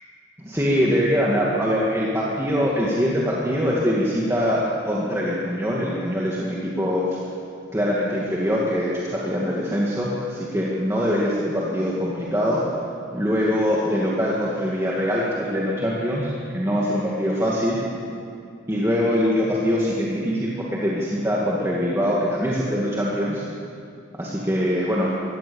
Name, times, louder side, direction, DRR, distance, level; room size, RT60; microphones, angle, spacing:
voice 1, 0.4-7.2 7.7-12.6 13.1-17.8 18.7-23.4 24.2-25.1, equal, 15° right, -5 dB, 2.1 m, -23 dB
22.5 x 17.5 x 7.1 m, 2.4 s
head